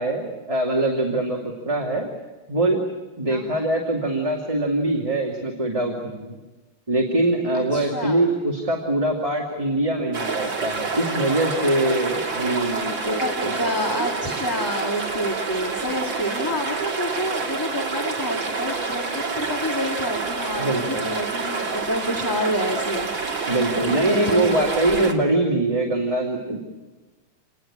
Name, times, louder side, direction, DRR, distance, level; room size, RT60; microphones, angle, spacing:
voice 1, 0.0-2.1 2.5-2.8 3.2-6.4 6.9-13.5 20.6-21.1 23.5-26.6, right 1 dB, 15° right, -1 dB, 2.5 m, -23 dB
voice 2, 3.3-3.7 7.5-8.2 13.0-23.1 23.9-24.7, left 1 dB, 10° left, 1 dB, 2.1 m, -28 dB
sound 1, 10.1-25.1, right 4 dB, 65° right, 3.3 m, -28 dB
28.0 x 20.0 x 8.8 m, 1.2 s
omnidirectional pair, 2.2 m